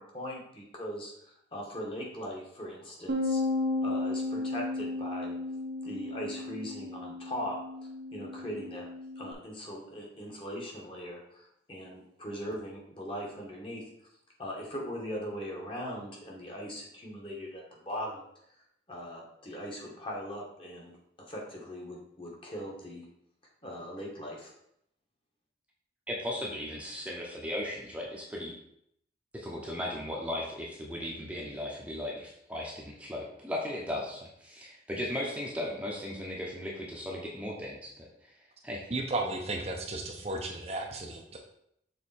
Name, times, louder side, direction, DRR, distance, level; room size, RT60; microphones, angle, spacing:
voice 1, 0.0-3.4 3.8-5.4 5.8-7.6 8.1-8.9 9.1-13.8 14.4-18.2 18.9-20.9 21.2-23.0 23.6-24.5, equal, 30° left, -2 dB, 1.6 m, -40 dB
Bass guitar, 3.1-9.3, left 2 dB, 75° right, 1.0 m, -34 dB
voice 2, 26.1-28.5 29.3-38.3 38.6-38.8, left 1 dB, 5° right, -3 dB, 0.9 m, -37 dB
voice 3, 38.9-41.4, right 2 dB, 35° right, 1 dB, 0.7 m, -34 dB
6.6 x 4.1 x 4.3 m, 0.73 s
head